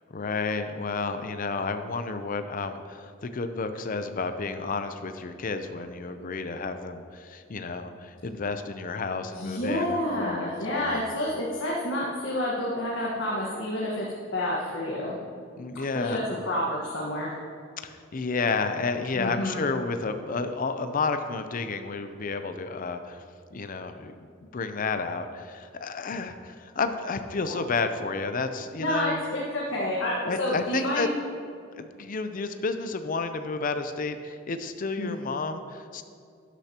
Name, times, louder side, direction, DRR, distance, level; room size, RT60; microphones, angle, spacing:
voice 1, 0.1-11.0 15.6-16.2 17.8-23.2 23.5-29.2 30.3-31.1 31.7-36.0, left 4 dB, 45° left, 8 dB, 0.5 m, -31 dB
voice 2, 9.3-14.1 14.3-15.2 15.9-17.3 19.1-19.6 27.5-27.6 28.8-31.2 35.0-35.1, left 1 dB, 75° left, -5 dB, 1.4 m, -29 dB
12.5 x 10.0 x 2.9 m, 2.4 s
head